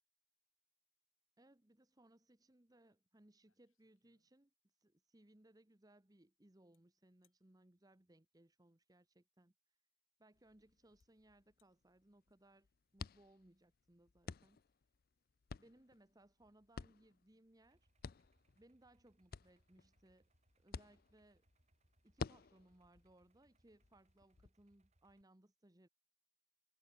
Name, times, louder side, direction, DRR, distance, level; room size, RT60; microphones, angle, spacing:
voice 1, 1.4-4.5 4.8-9.5 10.2-12.7 12.9-14.6 15.6-17.9 18.6-20.3 20.6-21.4 22.0-25.9, right 1 dB, 20° right, 1.0 m, -68 dB
sound 1, 2.9-3.0 3.3-4.7 6.7-6.8 7.2-7.4 9.3-9.4 10.3-10.4 11.0-11.1 11.4-11.7, left 10 dB, 85° left, 6.9 m, -85 dB
sound 2, 10.3-24.5, left 4 dB, 45° left, 0.5 m, -54 dB
Idling, 17.6-25.2, right 1 dB, 35° right, 3.5 m, -78 dB
head